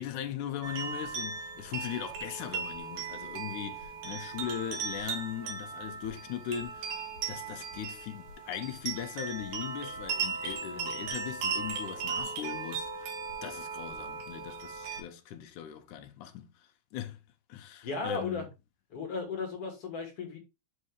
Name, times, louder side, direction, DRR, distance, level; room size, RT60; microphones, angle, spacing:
voice 1, 0.0-13.1 13.4-16.5 16.9-17.2 17.5-18.5, left 10 dB, 75° left, 2.2 m, -39 dB
sound 1, 0.6-15.0, right 5 dB, 70° right, 2.5 m, -37 dB
voice 2, 17.8-18.5 18.9-20.4, left 4 dB, 50° left, 2.1 m, -35 dB
5.7 x 5.4 x 3.3 m
omnidirectional pair, 3.8 m